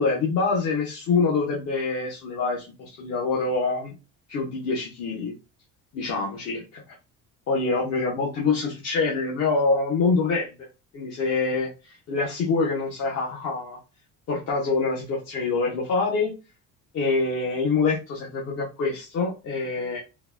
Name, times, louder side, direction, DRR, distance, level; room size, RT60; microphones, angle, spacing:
voice 1, 0.0-3.9 4.3-5.4 5.9-6.8 7.5-10.5 10.9-13.8 14.3-16.3 16.9-20.0, left 4 dB, 50° left, -3 dB, 0.8 m, -25 dB
3.8 x 2.2 x 2.3 m, 0.29 s
cardioid pair, 170°, 35 cm